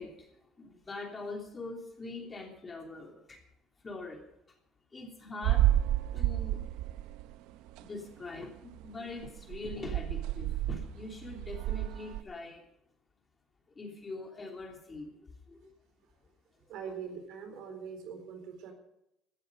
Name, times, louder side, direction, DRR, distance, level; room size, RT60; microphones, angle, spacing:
voice 1, 0.0-3.4 3.8-4.6 4.9-5.7 6.1-6.6 7.8-12.6 13.7-15.7 16.6-16.7, left 3 dB, 20° left, 2 dB, 3.0 m, -43 dB
sound 1, 5.4-7.4 7.7-7.8 8.4-8.5 8.7-8.9 9.2-12.2, right 14 dB, 90° right, 0.6 m, -30 dB
voice 2, 16.7-18.7, right 6 dB, 70° right, 6 dB, 4.0 m, -42 dB
16.5 x 12.5 x 5.2 m, 0.81 s
cardioid pair, 150°, 0 cm